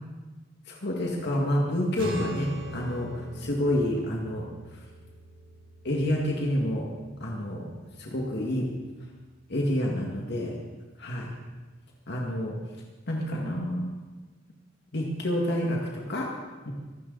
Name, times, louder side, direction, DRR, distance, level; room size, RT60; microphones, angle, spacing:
voice 1, 0.7-4.8 5.8-6.9 7.2-7.7 8.0-8.7 9.5-10.6 11.0-11.3 12.1-12.5 13.1-13.9 14.9-16.3 16.7-16.8, left 1 dB, 60° left, -1 dB, 2.1 m, -28 dB
sound 1, 1.9-8.6, right 1 dB, 75° right, 4.7 m, -40 dB
23.5 x 13.5 x 4.1 m, 1.3 s
head